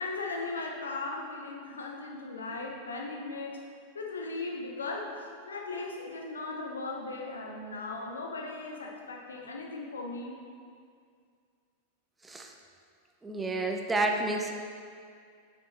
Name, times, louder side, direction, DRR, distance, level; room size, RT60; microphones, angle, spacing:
voice 1, 0.0-3.6 3.9-5.1 5.5-10.3, left 3 dB, 70° left, 0 dB, 0.9 m, -37 dB
voice 2, 13.2-14.5, right 2 dB, 10° right, 2 dB, 0.6 m, -30 dB
8.9 x 5.3 x 3.1 m, 2.2 s
figure-of-eight pair, 90°, 0 cm